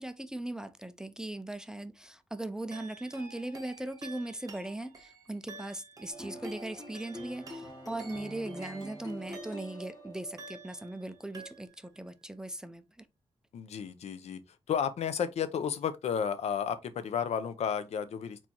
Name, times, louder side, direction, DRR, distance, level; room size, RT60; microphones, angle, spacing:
voice 1, 0.0-13.1, right 1 dB, 5° right, 0.4 m, -39 dB
sound 1, 2.7-10.0 10.4-11.1 11.3-12.0, right 3 dB, 35° right, 1.2 m, -50 dB
sound 2, 6.1-11.6, equal, 35° left, 2.4 m, -45 dB
voice 2, 13.5-14.4 14.7-18.5, left 7 dB, 80° left, 0.6 m, -32 dB
4.5 x 4.2 x 2.8 m
wide cardioid pair, 145°, 11 cm